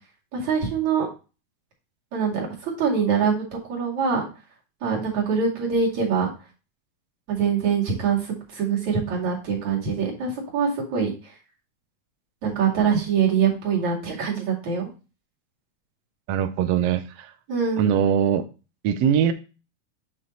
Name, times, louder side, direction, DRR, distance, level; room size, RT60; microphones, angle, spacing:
voice 1, 0.3-1.1 2.1-3.4 3.7-4.2 4.8-6.3 7.3-8.2 8.5-11.1 12.4-14.9 17.5-17.9, right 6 dB, 65° right, -3 dB, 3.6 m, -24 dB
voice 2, 16.3-17.3 17.8-18.5 18.8-19.3, right 9 dB, 80° right, 8 dB, 1.4 m, -21 dB
9.0 x 3.7 x 4.0 m, 0.32 s
omnidirectional pair, 3.6 m